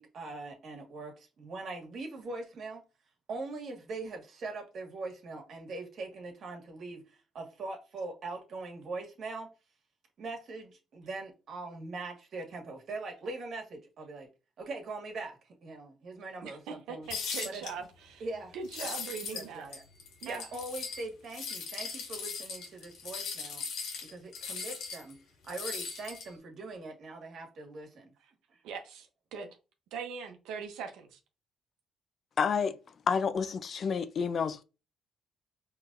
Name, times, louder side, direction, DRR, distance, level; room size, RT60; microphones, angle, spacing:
voice 1, 0.0-2.8 3.3-7.0 7.3-9.5 10.2-14.3 14.6-17.1 17.4-17.6 18.2-18.5 18.8-18.9 19.3-19.8 20.3-23.6 24.0-25.1 25.4-28.1, right 3 dB, 60° right, 1.7 m, -41 dB
voice 2, 16.4-18.3 18.5-19.7 20.2-20.5 28.2-28.3 28.6-29.6 29.9-31.2, right 5 dB, 85° right, 0.8 m, -41 dB
sound 1, 17.1-17.7 18.6-19.5 19.7-21.0 21.3-25.1 25.5-26.3, left 5 dB, 80° left, 1.4 m, -39 dB
voice 3, 32.4-32.8 33.1-34.6, left 6 dB, 55° left, 0.4 m, -29 dB
4.7 x 3.2 x 2.6 m
cardioid pair, 75°, 0 cm